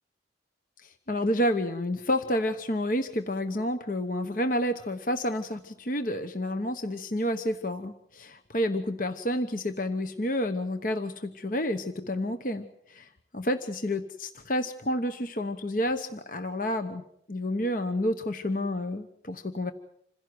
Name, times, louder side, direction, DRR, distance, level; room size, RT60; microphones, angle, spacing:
voice 1, 0.8-17.0 17.3-19.7, left 1 dB, 50° left, 8 dB, 1.1 m, -30 dB
27.0 x 16.5 x 7.9 m, 0.72 s
head